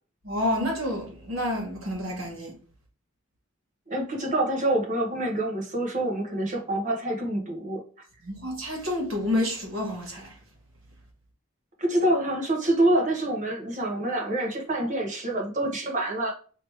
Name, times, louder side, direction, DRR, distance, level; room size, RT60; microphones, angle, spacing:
voice 1, 0.2-2.5 8.2-10.3, left 1 dB, 85° right, 1.6 m, -29 dB
voice 2, 3.9-7.8 11.8-16.3, right 1 dB, 40° right, 1.0 m, -26 dB
3.0 x 3.0 x 3.2 m
head